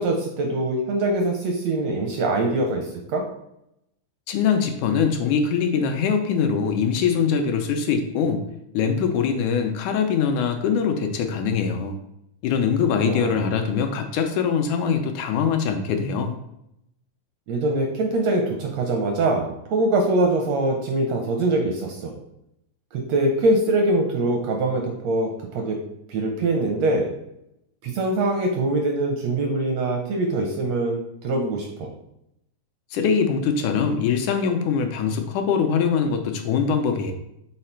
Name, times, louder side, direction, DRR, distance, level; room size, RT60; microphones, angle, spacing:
voice 1, 0.0-3.2 13.0-13.4 17.5-22.1 22.9-25.8 26.1-27.1 27.8-31.9, right 2 dB, 80° right, 2 dB, 1.5 m, -23 dB
voice 2, 4.3-8.4 8.7-12.0 12.4-16.3 32.9-37.1, left 6 dB, 80° left, 5 dB, 1.9 m, -23 dB
5.6 x 4.1 x 4.4 m, 0.81 s
omnidirectional pair, 3.8 m